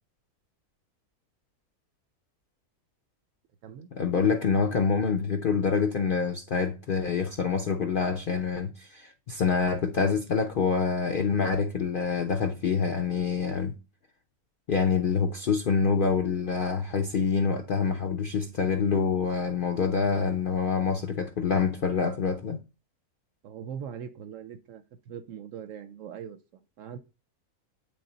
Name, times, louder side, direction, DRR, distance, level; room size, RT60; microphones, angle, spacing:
voice 1, 3.9-13.8 14.7-22.6, left 5 dB, 70° left, 0.5 m, -26 dB
voice 2, 23.4-26.4 26.8-27.0, right 8 dB, 65° right, 0.8 m, -41 dB
8.7 x 3.4 x 3.9 m
omnidirectional pair, 1.6 m